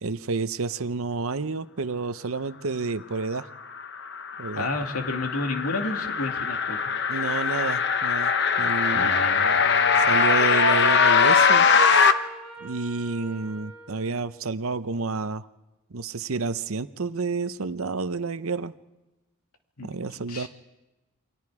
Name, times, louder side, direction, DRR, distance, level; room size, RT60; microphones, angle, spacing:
voice 1, 0.0-3.5 4.4-4.7 7.1-9.1 10.0-11.7 12.6-15.5 15.9-18.7 19.8-20.5, right 4 dB, 70° right, 13 dB, 0.8 m, -30 dB
sound 1, 3.8-12.1, left 5 dB, 50° left, 0.9 m, -21 dB
voice 2, 4.6-6.9 8.9-10.0 19.8-19.9 20.3-20.5, left 2 dB, 90° left, 4 dB, 2.4 m, -31 dB
Wind instrument woodwind instrument, 9.8-14.5, right 4 dB, ahead, 6.6 m, -44 dB
29.0 x 23.5 x 4.9 m, 1.1 s
head